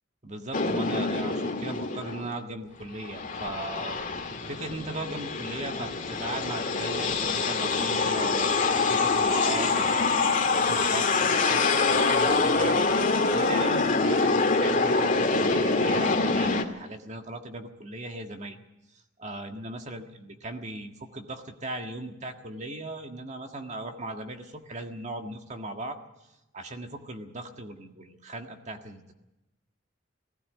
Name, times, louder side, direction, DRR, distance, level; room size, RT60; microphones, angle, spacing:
voice 1, 0.2-9.9 10.5-18.6 19.2-26.0 26.5-29.1, right 2 dB, 35° right, 4 dB, 1.7 m, -38 dB
sound 1, 0.5-2.3 2.8-16.6, left 3 dB, 40° left, 2.1 m, -25 dB
19.0 x 16.0 x 9.4 m, 0.95 s
head